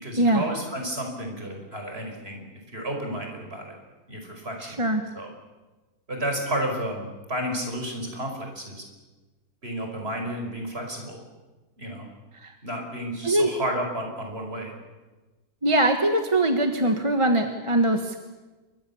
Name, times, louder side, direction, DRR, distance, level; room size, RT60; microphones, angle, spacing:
voice 1, 0.0-3.7 4.1-4.9 5.2-5.3 6.1-8.8 9.6-11.2 11.8-12.1 12.6-14.7, right 1 dB, 35° right, 3 dB, 5.4 m, -32 dB
voice 2, 4.6-5.0 12.4-12.5 13.2-13.5 15.6-18.2, right 1 dB, 20° right, 5 dB, 1.4 m, -22 dB
27.5 x 23.5 x 7.2 m, 1.2 s
omnidirectional pair, 1.8 m